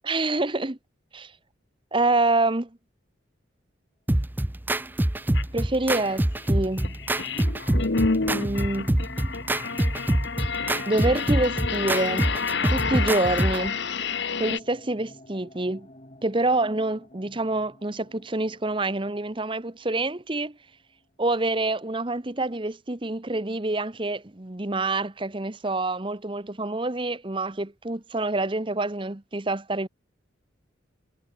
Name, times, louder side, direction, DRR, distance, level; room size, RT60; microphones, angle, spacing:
voice 1, 0.0-0.8 1.1-1.3 1.9-2.7 5.5-7.0 8.3-8.9 9.7-9.8 10.9-12.3 12.7-13.8 14.4-15.9 16.2-20.6 21.2-29.9, right 2 dB, 25° right, 1.0 m, -27 dB
sound 1, 4.1-13.7, right 1 dB, 10° right, 0.5 m, -26 dB
sound 2, 4.8-20.4, equal, 30° left, 5.1 m, -49 dB
sound 3, 5.3-5.4 5.9-14.6, left 4 dB, 60° left, 1.1 m, -29 dB
head